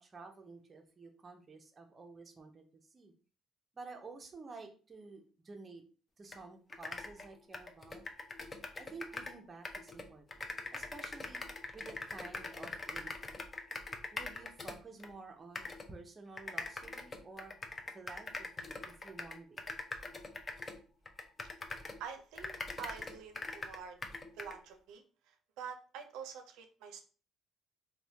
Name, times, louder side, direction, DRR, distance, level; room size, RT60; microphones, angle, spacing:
voice 1, 0.0-3.1 3.7-5.8 6.2-8.0 8.8-10.4 10.7-11.5 11.7-13.3 14.1-17.5 17.9-19.6, right 3 dB, 25° right, 4 dB, 0.5 m, -51 dB
sound 1, 6.3-6.4 6.7-9.4 9.6-15.1 15.6-15.9 16.4-22.0 22.4-24.6, left 3 dB, 25° left, 0.4 m, -43 dB
voice 2, 22.0-22.5 22.8-24.0 24.3-27.0, right 7 dB, 85° right, 6 dB, 0.4 m, -47 dB
3.1 x 2.1 x 2.6 m, 0.38 s
cardioid pair, 115°, 0 cm